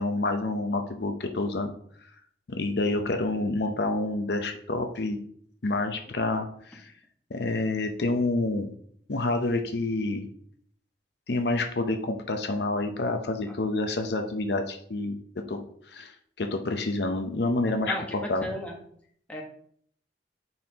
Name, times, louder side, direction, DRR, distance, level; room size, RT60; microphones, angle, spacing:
voice 1, 0.0-1.7 2.5-5.2 5.6-6.9 7.3-8.7 9.1-10.3 11.3-15.2 15.5-18.0 18.3-18.4, left 2 dB, 65° left, 5 dB, 0.7 m, -28 dB
voice 2, 17.8-18.8 19.3-19.4, equal, 10° left, -2 dB, 1.2 m, -35 dB
9.5 x 4.3 x 2.9 m, 0.63 s
head